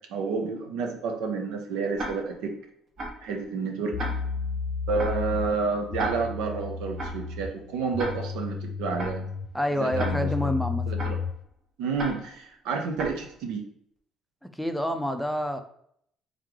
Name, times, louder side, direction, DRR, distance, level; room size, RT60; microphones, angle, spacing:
voice 1, 0.1-2.5 3.2-3.9 4.9-9.3 9.7-10.5 10.8-11.2 11.8-13.6, right 4 dB, 85° right, 3 dB, 0.8 m, -30 dB
Tick-tock, 2.0-2.5 3.0-3.3 4.0-4.5 5.0-5.3 6.0-6.5 7.0-7.3 8.0-8.5 9.0-9.3 10.0-10.5 11.0-11.3 12.0-12.5 13.0-13.3, right 1 dB, 45° right, 1.4 m, -36 dB
sound 1, 3.4-3.5 3.9-11.4, left 5 dB, 70° left, 0.4 m, -33 dB
voice 2, 9.5-10.8 14.5-15.6, left 1 dB, ahead, 7 dB, 0.5 m, -27 dB
3.6 x 3.1 x 3.7 m, 0.67 s
cardioid pair, 95°, 0 cm